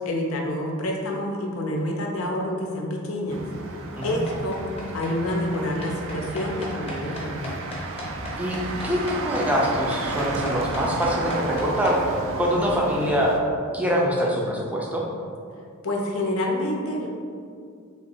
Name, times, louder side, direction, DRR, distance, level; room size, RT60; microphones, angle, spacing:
voice 1, 0.0-3.4 4.0-4.6 4.9-7.5 15.8-17.1, left 1 dB, 75° left, 0 dB, 0.6 m, -27 dB
Motor vehicle (road), 3.3-13.4, right 2 dB, 60° right, 0.4 m, -33 dB
sound 1, 4.0-12.0, left 2 dB, 30° left, 0.9 m, -36 dB
voice 2, 8.4-12.0 12.4-13.3 13.7-15.0, equal, 5° right, -3 dB, 0.5 m, -24 dB
3.1 x 3.0 x 4.5 m, 2.3 s
head